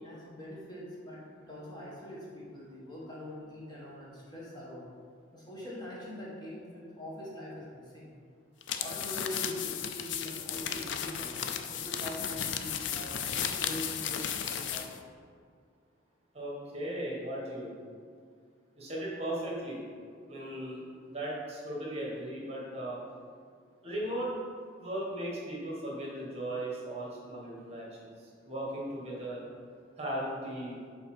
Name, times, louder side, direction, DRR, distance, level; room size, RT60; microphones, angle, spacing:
voice 1, 0.0-4.9 5.3-8.1 8.8-15.0, left 1 dB, 20° left, -6 dB, 1.4 m, -43 dB
sound 1, 8.6-15.0, left 8 dB, 65° left, 0.4 m, -35 dB
voice 2, 16.3-17.7 18.8-19.8 20.3-23.0 23.8-24.3 24.8-29.4 30.0-30.7, right 1 dB, 35° right, -4 dB, 1.5 m, -37 dB
5.6 x 4.2 x 6.0 m, 2.1 s
head